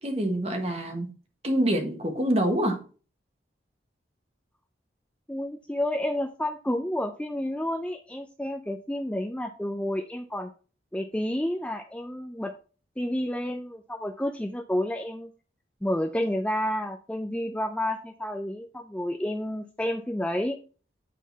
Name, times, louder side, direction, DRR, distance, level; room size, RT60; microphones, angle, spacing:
voice 1, 0.0-1.1 1.4-2.8, right 1 dB, 35° right, 1.4 m, -26 dB
voice 2, 5.3-10.5 10.9-12.5 13.0-15.3 15.8-20.6, left 1 dB, 5° left, 0.4 m, -30 dB
8.4 x 3.9 x 4.0 m
head